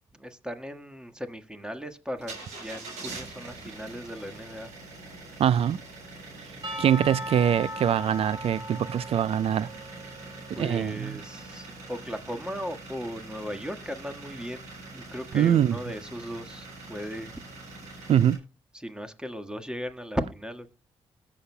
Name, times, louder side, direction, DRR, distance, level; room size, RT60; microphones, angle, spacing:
voice 1, 0.2-4.7 6.5-6.7 10.5-14.6 14.9-17.4 18.7-20.7, equal, 5° right, 1.5 m, -37 dB
sound 1, 2.2-18.4, right 3 dB, 90° right, 5.4 m, -44 dB
voice 2, 5.4-5.8 6.8-9.7 10.6-11.2 15.3-15.8 18.1-18.4, right 9 dB, 55° right, 0.4 m, -23 dB
Percussion / Church bell, 6.6-11.0, equal, 40° right, 3.6 m, -38 dB
20.5 x 7.2 x 2.2 m
supercardioid pair, 50°, 12 cm